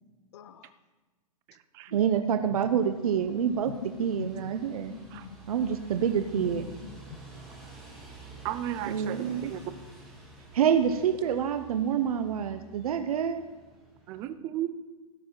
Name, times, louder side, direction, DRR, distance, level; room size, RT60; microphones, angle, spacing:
voice 1, 0.3-0.8 1.9-2.0 2.3-2.8 3.2-5.4 5.9-7.2, left 8 dB, 45° left, 14 dB, 0.6 m, -43 dB
voice 2, 1.9-3.7 4.0-4.9 5.5-6.6 8.9-9.5 10.5-13.4, right 8 dB, 70° right, 8 dB, 0.7 m, -27 dB
sound 1, 2.5-14.3, right 2 dB, ahead, 2.2 m, -49 dB
voice 3, 8.4-9.6 14.1-14.7, right 12 dB, 15° right, 11 dB, 0.3 m, -34 dB
16.5 x 6.2 x 3.8 m, 1.3 s
hypercardioid pair, 165°, 19 cm